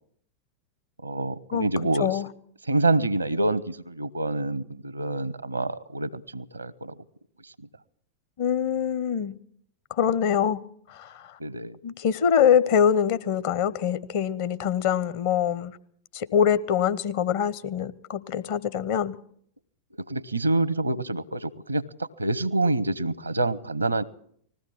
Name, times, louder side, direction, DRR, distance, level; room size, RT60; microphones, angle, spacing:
voice 1, 1.0-2.2 2.6-7.0 7.4-7.5 11.4-11.8 20.0-24.0, right 2 dB, 80° right, 0.8 m, -27 dB
voice 2, 8.4-9.4 9.9-10.6 10.9-11.4 11.8-15.8 16.1-19.1, left 8 dB, 50° left, 0.9 m, -24 dB
20.0 x 15.0 x 8.7 m
figure-of-eight pair, 90°, 0 cm